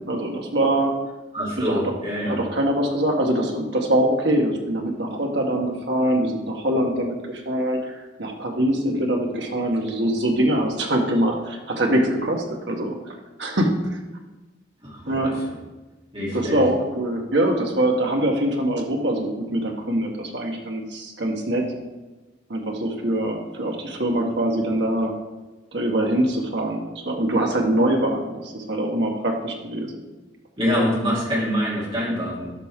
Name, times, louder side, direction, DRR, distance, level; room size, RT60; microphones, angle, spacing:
voice 1, 0.1-0.9 1.6-1.9 2.2-13.7 15.1-15.4 16.3-21.6 22.5-25.1 25.7-29.9, right 1 dB, 65° right, 1 dB, 1.5 m, -23 dB
voice 2, 1.3-2.4 14.8-15.1 16.1-16.6 30.6-32.6, equal, 30° right, -6 dB, 3.2 m, -25 dB
11.5 x 6.0 x 3.7 m, 1.2 s
head